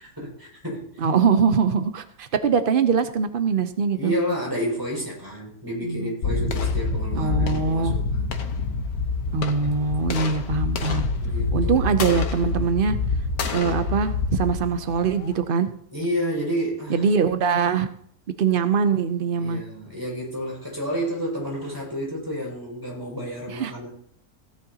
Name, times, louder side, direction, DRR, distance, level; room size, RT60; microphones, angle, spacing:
voice 1, 0.0-1.0 3.9-8.4 11.2-11.9 15.9-17.0 19.4-23.9, equal, 10° right, -3 dB, 5.7 m, -30 dB
voice 2, 1.0-4.1 5.8-6.1 7.2-8.0 9.3-11.1 11.5-13.0 13.5-15.7 16.9-17.9 18.4-19.6 23.5-23.7, right 6 dB, 75° right, 9 dB, 0.5 m, -22 dB
sound 1, 6.2-15.4, left 4 dB, 65° left, 1.4 m, -26 dB
16.5 x 10.5 x 2.8 m, 0.64 s
omnidirectional pair, 1.8 m